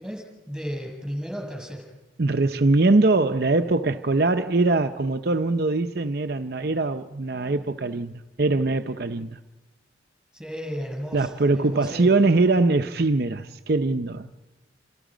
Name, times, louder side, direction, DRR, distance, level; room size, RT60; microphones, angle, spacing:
voice 1, 0.0-1.8 10.3-12.1, equal, 5° right, 7.2 m, -34 dB
voice 2, 2.2-8.1 8.4-9.4 11.1-14.3, right 3 dB, 55° right, 0.7 m, -22 dB
29.0 x 27.5 x 5.1 m
head